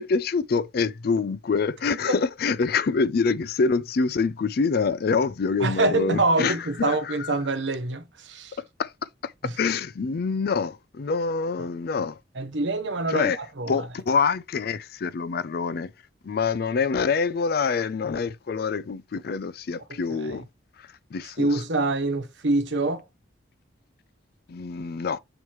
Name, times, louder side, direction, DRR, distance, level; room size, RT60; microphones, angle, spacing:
voice 1, 0.0-7.3 8.6-8.9 9.2-12.2 13.1-13.4 13.7-15.9 16.2-20.4 20.8-21.6 24.5-25.2, left 5 dB, 55° left, 0.4 m, -26 dB
voice 2, 5.6-8.6 12.4-13.7 20.2-20.3 21.4-23.0, right 2 dB, 75° right, 1.0 m, -25 dB
7.0 x 3.1 x 4.7 m
head